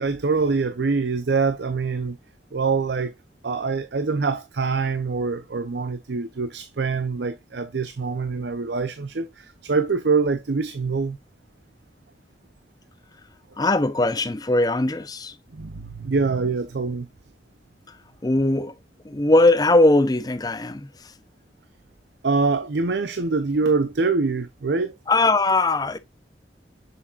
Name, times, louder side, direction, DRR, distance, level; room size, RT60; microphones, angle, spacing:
voice 1, 0.0-2.2 2.5-3.1 3.4-11.2 15.5-17.1 22.2-24.9, right 4 dB, 75° right, 0.7 m, -24 dB
voice 2, 13.6-15.3 18.2-18.7 19.0-21.1 25.1-26.0, left 2 dB, 20° left, 0.6 m, -20 dB
7.0 x 7.0 x 2.4 m
head